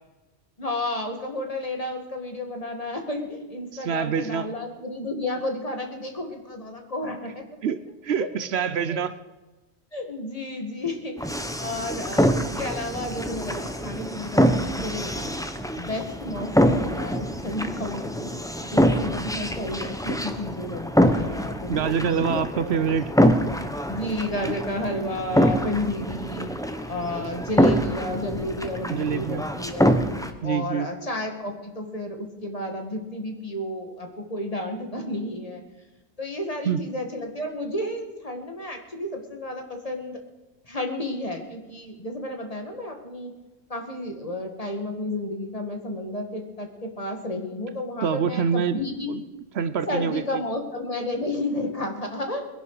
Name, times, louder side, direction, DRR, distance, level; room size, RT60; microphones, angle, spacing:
voice 1, 0.6-7.5 8.2-9.0 9.9-15.5 15.8-22.7 23.9-26.5 26.9-30.0 30.4-35.6 36.2-40.2 40.6-43.3 43.7-49.1 49.9-52.5, left 1 dB, 30° left, 3 dB, 2.1 m, -32 dB
voice 2, 3.8-4.5 7.6-9.1 21.7-23.1 28.9-29.4 30.4-30.9 36.7-36.8 48.0-48.8 49.1-49.2 49.6-50.4, right 7 dB, 70° right, 13 dB, 0.9 m, -25 dB
sound 1, 11.2-30.3, equal, 5° left, 0.8 m, -25 dB
22.0 x 10.5 x 4.9 m, 1.1 s
omnidirectional pair, 1.2 m